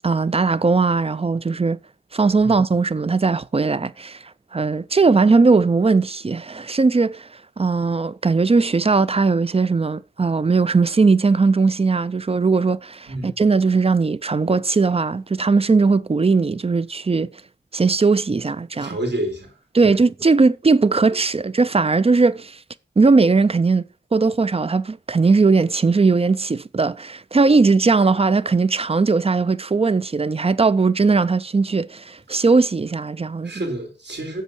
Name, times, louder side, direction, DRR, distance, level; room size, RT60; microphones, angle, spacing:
voice 1, 0.0-1.8 2.1-4.2 4.5-7.3 7.6-17.3 17.7-19.0 19.7-22.6 23.0-23.8 24.1-33.6, right 4 dB, 30° right, 0.4 m, -18 dB
voice 2, 18.8-19.5 19.8-19.9 32.3-32.4 33.4-34.4, right 1 dB, 65° right, 3.8 m, -29 dB
8.4 x 7.2 x 5.3 m
wide cardioid pair, 85°, 19 cm